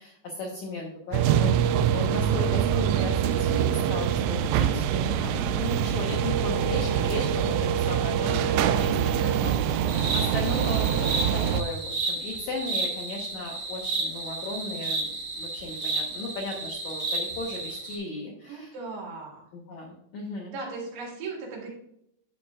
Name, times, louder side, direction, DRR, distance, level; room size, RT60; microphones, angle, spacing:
voice 1, 0.0-1.5 1.9-9.6 9.9-18.7 19.5-20.5, left 2 dB, 90° left, -1 dB, 1.6 m, -36 dB
sound 1, 1.1-11.6, right 9 dB, 90° right, 2.8 m, -24 dB
voice 2, 9.2-9.8 18.5-19.5 20.5-21.7, right 4 dB, 70° right, -2 dB, 4.1 m, -38 dB
sound 2, 9.9-18.0, right 3 dB, 55° right, 1.8 m, -32 dB
10.5 x 7.5 x 2.4 m, 0.75 s
omnidirectional pair, 5.0 m